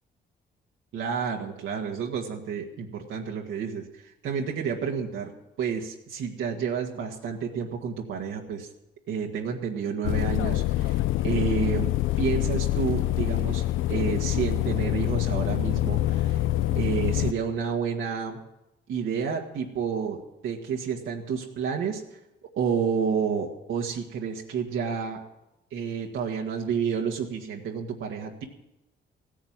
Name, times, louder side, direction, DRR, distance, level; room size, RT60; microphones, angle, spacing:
voice 1, 0.9-5.3 5.6-8.7 9.1-11.9 12.2-13.6 13.9-16.4 16.8-18.4 18.9-22.0 22.6-25.2 25.7-28.4, right 6 dB, 75° right, 0 dB, 1.9 m, -30 dB
sound 1, 10.0-17.3, left 15 dB, 85° left, 0.6 m, -25 dB
16.0 x 10.0 x 7.4 m, 0.92 s
cardioid pair, 90°, 20 cm